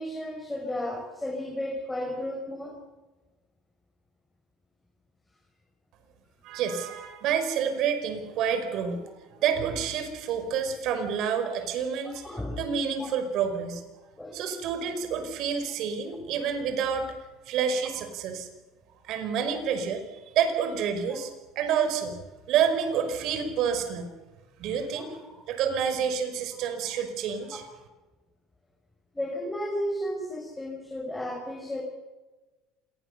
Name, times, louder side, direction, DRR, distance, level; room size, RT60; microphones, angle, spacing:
voice 1, 0.0-2.8 12.2-12.6 13.0-13.1 14.2-14.4 17.8-17.9 25.0-25.1 29.1-31.8, left 1 dB, 10° left, 1 dB, 5.3 m, -33 dB
voice 2, 6.4-13.8 14.3-17.1 17.5-18.5 19.0-21.3 21.6-22.2 22.5-24.1 24.6-27.6, right 7 dB, 65° right, 8 dB, 5.3 m, -28 dB
27.0 x 20.5 x 6.9 m, 1.2 s
supercardioid pair, 90°, 0 cm